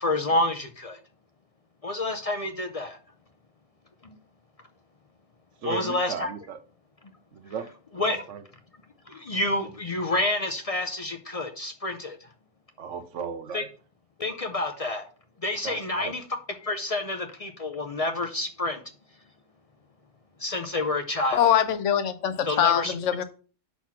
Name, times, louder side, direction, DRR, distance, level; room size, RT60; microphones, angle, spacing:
voice 1, 0.0-1.0 1.8-3.0 4.0-4.2 5.6-6.3 8.0-8.2 9.1-12.3 13.5-13.6 14.2-15.1 15.4-16.2 16.6-18.8 20.4-21.5 22.4-22.9, left 2 dB, 40° left, 0.6 m, -28 dB
voice 2, 5.6-6.6 7.3-7.7 7.9-8.4 12.8-13.7 15.6-16.1, right 7 dB, 75° right, 1.1 m, -36 dB
voice 3, 21.3-23.2, left 9 dB, 75° left, 1.0 m, -23 dB
6.0 x 4.2 x 5.7 m
omnidirectional pair, 1.3 m